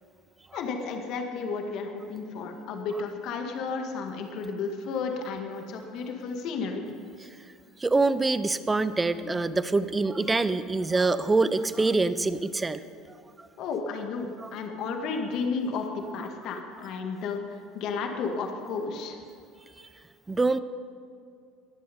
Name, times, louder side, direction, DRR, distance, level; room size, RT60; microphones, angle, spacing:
voice 1, 0.5-6.9 13.6-19.2, left 4 dB, 60° left, 3 dB, 2.0 m, -33 dB
voice 2, 7.8-12.8 14.4-14.5 20.3-20.6, right 3 dB, 15° right, 14 dB, 0.7 m, -25 dB
21.5 x 7.7 x 5.4 m, 2.4 s
supercardioid pair, 90°, 0 cm